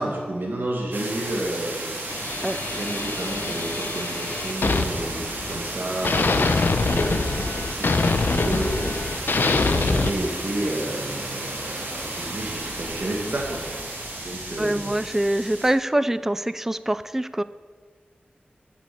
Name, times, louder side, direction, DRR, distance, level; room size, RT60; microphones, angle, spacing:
voice 1, 0.0-14.9, right 1 dB, 65° right, -2 dB, 1.9 m, -31 dB
sound 1, 0.9-15.7, right 2 dB, 85° right, 2.7 m, -33 dB
sound 2, 2.1-5.7 6.0-10.1, left 3 dB, 80° left, 0.7 m, -25 dB
sound 3, 7.9-14.5, left 1 dB, 55° left, 2.8 m, -44 dB
voice 2, 14.6-17.4, right 1 dB, 10° right, 14 dB, 0.3 m, -24 dB
8.6 x 7.6 x 8.5 m, 1.5 s
wide cardioid pair, 90°, 4 cm